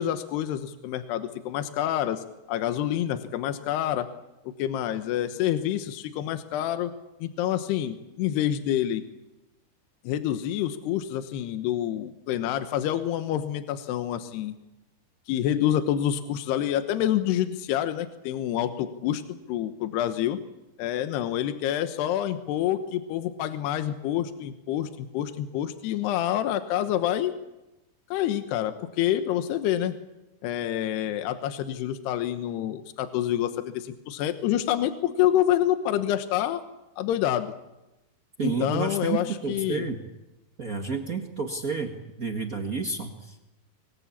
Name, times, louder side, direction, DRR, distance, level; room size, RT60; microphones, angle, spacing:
voice 1, 0.0-4.1 4.6-6.9 7.2-9.0 10.0-14.5 15.3-19.2 19.5-20.4 20.8-27.3 28.1-30.0 30.4-36.6 37.0-37.5 38.4-39.9, left 11 dB, 80° left, 9 dB, 3.1 m, -27 dB
voice 2, 38.4-40.0 40.6-43.6, right 4 dB, 55° right, 3 dB, 0.9 m, -30 dB
24.5 x 21.5 x 8.5 m, 0.96 s
omnidirectional pair, 4.7 m